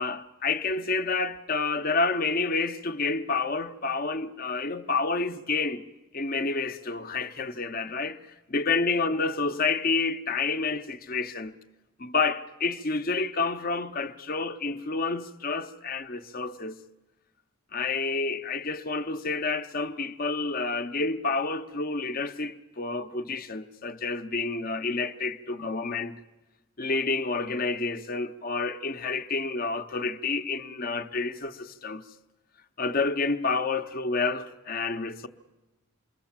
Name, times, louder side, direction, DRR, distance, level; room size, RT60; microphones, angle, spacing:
voice 1, 0.0-5.8 6.1-8.2 8.5-11.6 12.0-16.8 17.7-26.2 26.8-32.1 32.8-35.3, left 4 dB, 40° left, 0.9 m, -29 dB
27.5 x 22.0 x 7.3 m
head